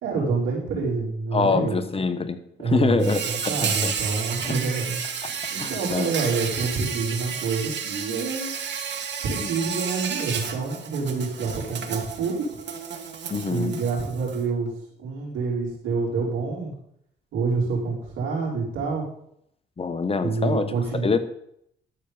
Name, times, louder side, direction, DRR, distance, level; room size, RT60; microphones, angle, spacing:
voice 1, 0.0-1.8 2.6-5.0 5.5-8.5 9.2-12.5 13.5-14.7 15.0-16.7 17.3-19.0 20.2-21.2, right 4 dB, 90° right, -4 dB, 4.6 m, -27 dB
voice 2, 1.3-3.9 5.2-6.1 9.4-9.5 13.3-13.8 19.8-20.7 21.0-21.2, left 4 dB, 30° left, 10 dB, 1.1 m, -25 dB
Insect, 3.0-14.4, right 7 dB, 65° right, 1.6 m, -31 dB
13.0 x 4.7 x 7.1 m, 0.73 s
cardioid pair, 90°, 20 cm